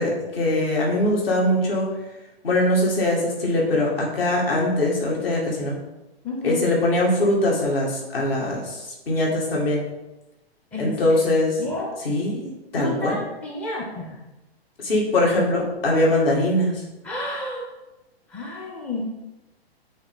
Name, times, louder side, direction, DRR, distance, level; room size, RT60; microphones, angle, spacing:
voice 1, 0.0-1.9 2.4-5.7 6.4-9.8 10.8-11.6 12.0-13.2 14.8-16.8, left 1 dB, 65° left, -2 dB, 2.2 m, -22 dB
voice 2, 6.2-6.7 10.7-11.0 11.6-11.9 12.8-14.2 17.0-17.7 18.3-19.0, left 2 dB, 5° left, -2 dB, 0.4 m, -30 dB
8.5 x 3.1 x 3.7 m, 1.0 s
figure-of-eight pair, 115°, 31 cm